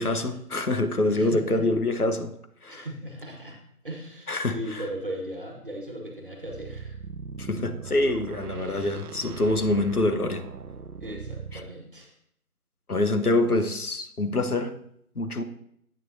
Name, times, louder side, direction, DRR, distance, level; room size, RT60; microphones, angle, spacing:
voice 1, 0.0-2.3 2.6-2.9 4.3-4.9 7.4-10.4 11.5-11.6 12.9-14.8 15.2-15.4, left 2 dB, 80° left, 8 dB, 1.1 m, -25 dB
voice 2, 1.1-1.7 2.7-3.6 3.8-7.0 11.0-12.1, right 1 dB, 35° right, 1 dB, 1.6 m, -37 dB
sound 1, 6.4-11.7, right 6 dB, 90° right, 0.6 m, -40 dB
9.8 x 8.9 x 2.7 m, 0.69 s
figure-of-eight pair, 170°, 45 cm